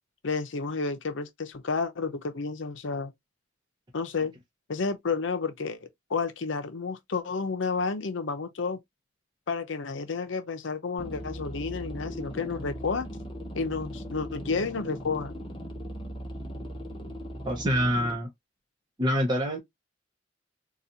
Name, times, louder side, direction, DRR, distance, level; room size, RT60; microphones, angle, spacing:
voice 1, 0.2-3.1 3.9-4.3 4.7-5.8 6.1-8.8 9.5-13.1 13.6-15.3, left 4 dB, 75° left, 0.6 m, -31 dB
sound 1, 11.0-18.2, equal, 25° left, 0.8 m, -38 dB
voice 2, 17.4-18.3 19.0-19.6, equal, 25° right, 0.8 m, -26 dB
3.9 x 2.3 x 2.8 m
head